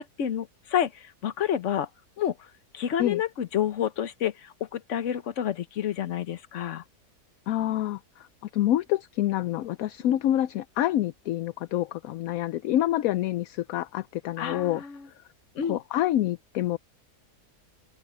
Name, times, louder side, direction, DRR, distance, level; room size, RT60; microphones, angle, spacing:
voice 1, 0.0-1.9 2.2-2.3 2.7-6.8 14.4-15.1 15.5-15.8, left 10 dB, 55° left, 1.2 m, -29 dB
voice 2, 7.5-14.8 15.7-16.8, left 13 dB, 70° left, 0.9 m, -27 dB
omnidirectional pair, 1.7 m